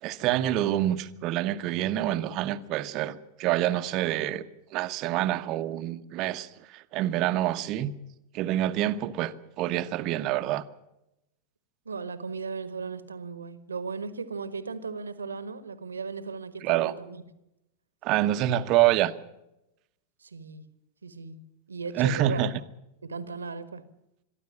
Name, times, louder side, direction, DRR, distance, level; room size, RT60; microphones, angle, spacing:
voice 1, 0.0-4.4 4.7-7.9 8.3-10.6 16.6-16.9 18.0-19.1 21.9-22.5, right 13 dB, 40° right, 1.1 m, -27 dB
voice 2, 11.8-17.2 20.2-20.6 21.0-21.4 21.7-22.5 23.0-23.9, right 5 dB, 75° right, 1.4 m, -36 dB
23.0 x 13.5 x 8.6 m
figure-of-eight pair, 90°, 0 cm